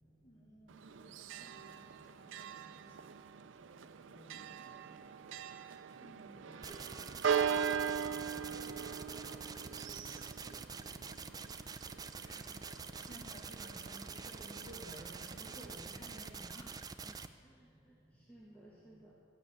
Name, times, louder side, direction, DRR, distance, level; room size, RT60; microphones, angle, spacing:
voice 1, 0.3-0.7 1.3-1.5 6.0-6.3 12.3-12.5 13.1-16.6, right 1 dB, 20° left, -3 dB, 2.3 m, -53 dB
Church bell, 0.7-15.8, right 7 dB, 75° right, 0.5 m, -41 dB
voice 2, 4.0-5.2 6.3-11.4 16.8-19.1, right 1 dB, 5° left, -7 dB, 1.7 m, -58 dB
sound 1, 6.6-17.3, right 5 dB, 20° right, 0.4 m, -46 dB
13.5 x 9.3 x 6.3 m, 2.1 s
head